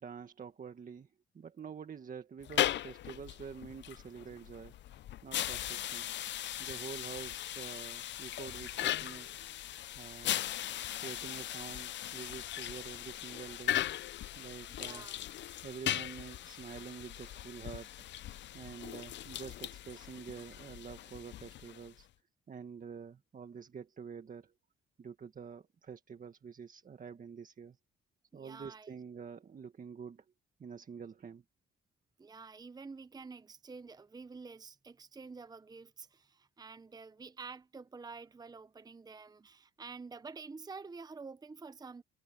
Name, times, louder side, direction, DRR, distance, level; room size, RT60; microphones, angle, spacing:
voice 1, 0.0-4.8 5.2-6.1 6.6-9.4 9.9-10.4 11.0-13.8 14.4-15.1 15.6-17.9 18.5-22.1 22.5-24.5 25.0-27.8 28.3-30.3 30.6-31.4, right 6 dB, 45° right, 1.7 m, -47 dB
sound 1, 2.4-22.0, left 12 dB, 65° left, 0.6 m, -38 dB
voice 2, 14.7-15.3 28.3-28.9 32.2-42.0, right 4 dB, 20° right, 0.8 m, -49 dB
cardioid pair, 90°, 20 cm